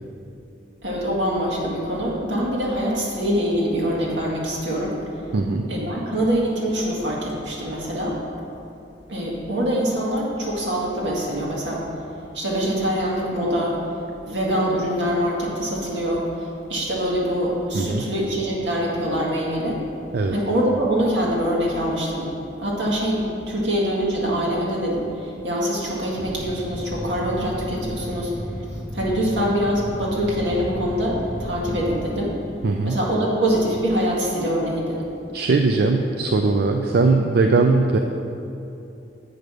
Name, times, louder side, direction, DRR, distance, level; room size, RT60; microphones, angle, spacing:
voice 1, 0.8-5.0 5.7-8.2 9.1-11.8 12.3-13.8 14.3-19.8 20.3-22.3 22.6-28.3 28.9-32.3 32.8-35.0, equal, 80° right, -4 dB, 1.9 m, -24 dB
voice 2, 5.3-5.6 17.7-18.0 20.1-20.4 32.6-33.0 35.3-38.0, right 3 dB, 60° right, 4 dB, 0.4 m, -20 dB
sound 1, 26.2-32.2, equal, 5° left, 0.5 m, -34 dB
7.9 x 5.2 x 6.2 m, 2.8 s
head